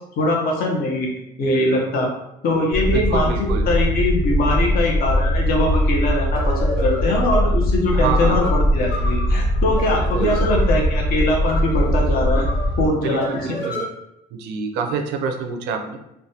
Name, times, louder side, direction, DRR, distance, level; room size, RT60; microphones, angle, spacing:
voice 1, 0.2-1.1 1.4-2.1 2.4-3.3 3.7-12.5 12.8-13.6, left 1 dB, 60° left, -1 dB, 0.7 m, -21 dB
sound 1, 2.7-12.9, equal, 30° left, 0.9 m, -21 dB
voice 2, 2.9-3.7 7.9-8.4 9.9-10.4 13.0-13.9 14.3-16.0, right 5 dB, 85° right, 4 dB, 0.5 m, -27 dB
sound 2, 5.6-13.9, left 1 dB, 80° left, 1.2 m, -33 dB
3.2 x 2.2 x 2.7 m, 0.84 s
cardioid pair, 110°, 17 cm